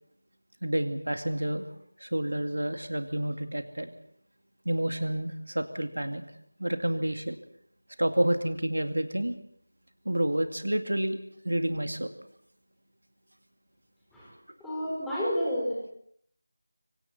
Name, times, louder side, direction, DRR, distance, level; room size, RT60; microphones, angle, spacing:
voice 1, 0.6-1.7 2.0-3.9 4.7-6.2 6.6-7.4 8.0-9.4 10.1-12.1, right 1 dB, 75° right, 7 dB, 2.3 m, -29 dB
voice 2, 14.6-15.9, equal, 5° left, -8 dB, 4.9 m, -30 dB
26.0 x 24.5 x 4.3 m, 0.66 s
figure-of-eight pair, 170°, 0 cm